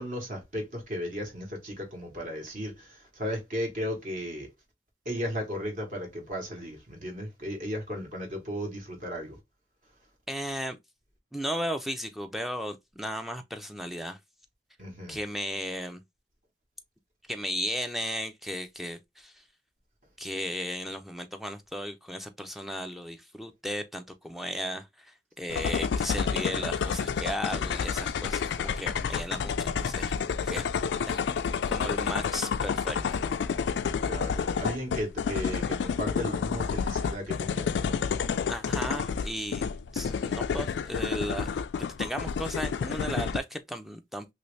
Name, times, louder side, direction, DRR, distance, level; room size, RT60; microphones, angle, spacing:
voice 1, 0.0-4.5 5.0-9.4 14.8-15.2 34.0-38.0, equal, 50° right, 1.2 m, -35 dB
voice 2, 10.3-10.8 11.3-14.2 15.1-16.0 17.3-19.4 20.2-31.2 31.7-33.2 38.5-41.6 42.0-44.3, equal, ahead, 0.4 m, -35 dB
sound 1, 25.5-43.4, left 6 dB, 90° left, 0.3 m, -30 dB
3.0 x 2.6 x 3.2 m
head